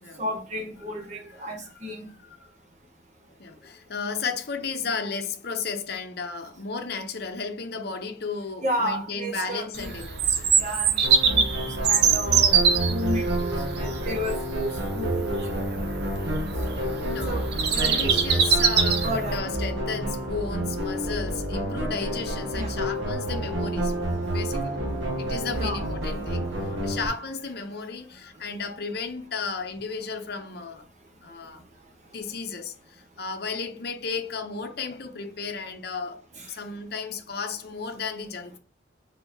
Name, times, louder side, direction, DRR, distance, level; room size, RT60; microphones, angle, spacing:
voice 1, 0.2-2.1 8.6-9.9 10.6-11.4 11.8-12.5 12.9-15.6 16.7-17.0 17.2-17.4 17.8-18.1 19.0-19.4 22.5-22.7 25.5-25.9 36.4-36.5, equal, 40° right, 1.4 m, -32 dB
voice 2, 3.4-10.5 16.7-24.8 25.2-30.9 31.2-31.6 32.1-38.6, left 5 dB, 55° left, 0.7 m, -34 dB
Bird vocalization bird call bird song, 9.7-19.4, right 6 dB, 55° right, 0.8 m, -24 dB
sound 1, 11.0-27.1, right 1 dB, 75° right, 1.5 m, -29 dB
4.5 x 4.2 x 2.7 m
head